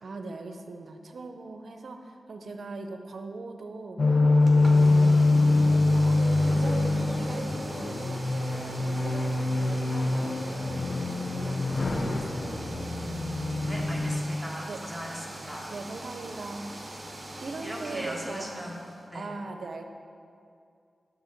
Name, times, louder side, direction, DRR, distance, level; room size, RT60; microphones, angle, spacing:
voice 1, 0.0-4.0 4.5-5.2 5.6-10.8 11.3-12.7 14.6-14.8 15.7-16.8 17.4-18.6 19.1-19.8, right 3 dB, 70° right, 5 dB, 0.5 m, -40 dB
sound 1, 4.0-14.2, left 2 dB, 45° left, 0.5 m, -24 dB
sound 2, 4.4-19.0, right 1 dB, 25° right, 0.8 m, -42 dB
voice 2, 13.6-15.6 17.6-18.8 19.1-19.3, equal, ahead, -3 dB, 1.2 m, -38 dB
6.2 x 4.8 x 5.2 m, 2.4 s
wide cardioid pair, 85°, 0 cm